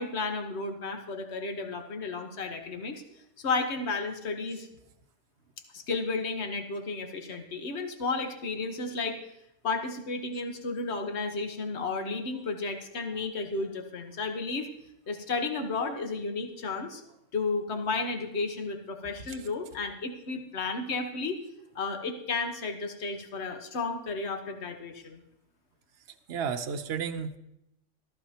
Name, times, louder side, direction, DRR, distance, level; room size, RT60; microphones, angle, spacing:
voice 1, 0.0-3.0 3.4-4.7 5.7-9.2 9.6-14.7 15.1-17.0 17.3-21.4 21.7-25.2, left 3 dB, 60° left, 5 dB, 1.5 m, -33 dB
voice 2, 26.3-27.4, right 6 dB, 60° right, 5 dB, 1.0 m, -32 dB
14.5 x 14.5 x 2.9 m, 0.81 s
omnidirectional pair, 1.3 m